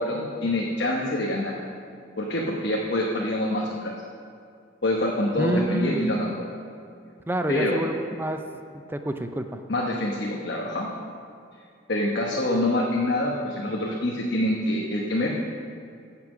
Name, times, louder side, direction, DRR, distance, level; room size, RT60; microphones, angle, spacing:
voice 1, 0.0-1.6 2.2-3.9 4.8-6.5 7.5-7.8 9.7-10.9 11.9-15.3, left 1 dB, 55° left, -2 dB, 1.1 m, -26 dB
voice 2, 5.4-6.1 7.3-8.4 8.7-9.6, right 1 dB, 10° right, 6 dB, 0.5 m, -28 dB
15.5 x 5.9 x 6.2 m, 2.3 s
head